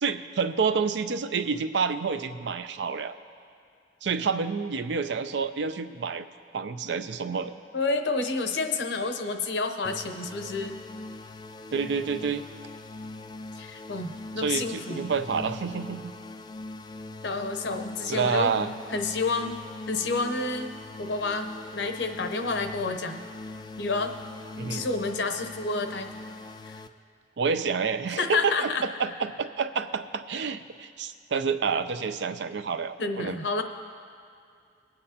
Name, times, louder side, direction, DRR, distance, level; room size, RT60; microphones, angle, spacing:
voice 1, 0.0-3.2 4.0-6.3 6.5-7.5 11.7-12.4 14.4-16.1 18.1-18.7 24.6-24.8 27.4-33.6, right 5 dB, 70° right, 10 dB, 0.5 m, -28 dB
voice 2, 7.7-10.8 13.6-15.1 17.2-18.5 18.9-19.5 19.9-23.2 23.8-24.1 24.7-26.1 26.6-26.8 28.2-28.8 33.0-33.6, left 3 dB, 70° left, 7 dB, 0.8 m, -29 dB
sound 1, 9.8-26.9, left 2 dB, 25° left, 0.3 m, -41 dB
22.5 x 8.7 x 2.8 m, 2.4 s
head